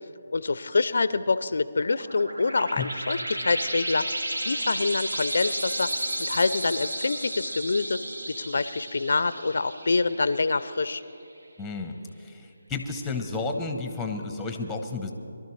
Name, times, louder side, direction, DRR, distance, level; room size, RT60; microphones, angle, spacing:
voice 1, 0.3-8.0 8.3-11.0, left 3 dB, 70° left, 14 dB, 0.5 m, -26 dB
sound 1, 1.8-11.0, right 1 dB, 85° right, 1.3 m, -33 dB
voice 2, 11.6-15.1, left 3 dB, 5° left, 5 dB, 0.9 m, -32 dB
23.0 x 12.0 x 3.2 m, 2.7 s
figure-of-eight pair, 155°, 0 cm